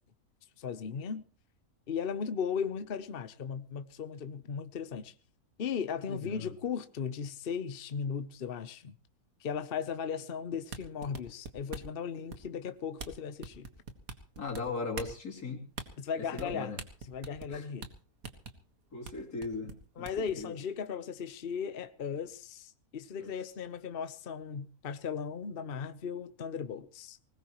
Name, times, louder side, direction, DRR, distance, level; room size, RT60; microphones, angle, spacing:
voice 1, 0.6-1.2 1.9-5.1 5.6-9.0 9.4-13.7 16.0-16.7 17.1-17.9 20.0-27.2, left 6 dB, 45° left, 1.0 m, -37 dB
voice 2, 6.1-6.5 14.4-15.7 16.3-16.8 17.5-17.7 18.9-20.6 23.2-23.3, left 4 dB, 90° left, 3.5 m, -38 dB
sound 1, 10.6-12.0 12.3-12.6 13.0-13.1 13.4-14.6 14.9-15.1 15.7-15.9 16.4-16.5 16.8-17.5 17.8-17.9 18.2-18.5 19.0-19.1 19.4-20.3, right 4 dB, 70° right, 2.0 m, -42 dB
20.5 x 19.0 x 3.1 m
omnidirectional pair, 1.6 m